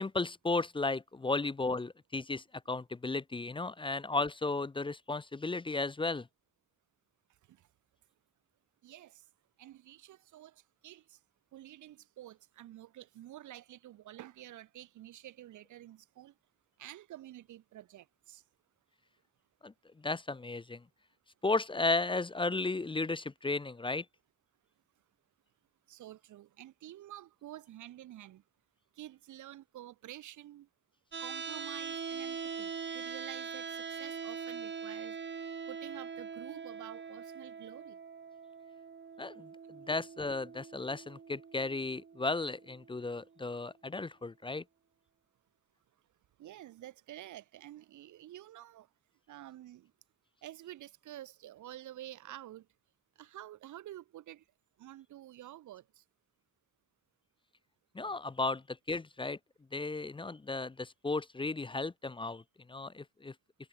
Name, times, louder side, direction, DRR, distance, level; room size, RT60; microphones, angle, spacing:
voice 1, 0.0-6.3 19.6-20.8 21.4-24.0 39.2-44.6 57.9-59.4 59.7-62.4 62.7-63.3, left 3 dB, 15° left, 0.7 m, -34 dB
voice 2, 8.8-9.2 9.6-11.2 11.5-16.3 16.8-18.4 25.9-28.4 28.9-30.7 31.2-35.2 35.7-38.0 46.4-48.9 49.3-49.9 50.4-52.7 53.2-54.4 54.8-56.0, right 13 dB, 85° right, 1.3 m, -49 dB
sound 1, 31.1-43.1, right 6 dB, 40° right, 2.5 m, -43 dB
cardioid pair, 110°, 29 cm